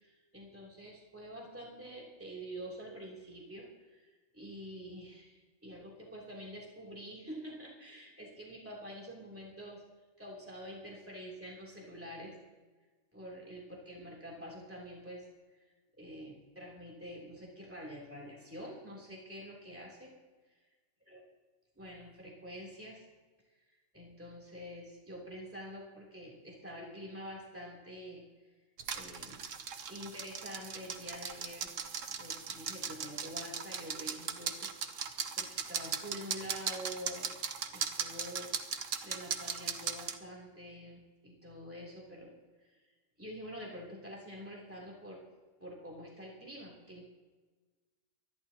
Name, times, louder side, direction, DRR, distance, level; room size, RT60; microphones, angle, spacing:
voice 1, 0.0-9.8 10.2-12.3 13.1-15.3 15.6-15.7 16.0-20.1 21.1-21.2 21.7-23.0 23.7-28.2 28.9-29.4 29.9-31.7 32.1-37.3 37.7-38.5 38.8-42.3 42.6-42.8 43.2-45.2 45.6-47.0, equal, 10° right, -4 dB, 3.3 m, -47 dB
sound 1, 28.8-40.2, right 6 dB, 75° right, 1.3 m, -38 dB
25.0 x 11.5 x 2.9 m, 1.3 s
omnidirectional pair, 1.3 m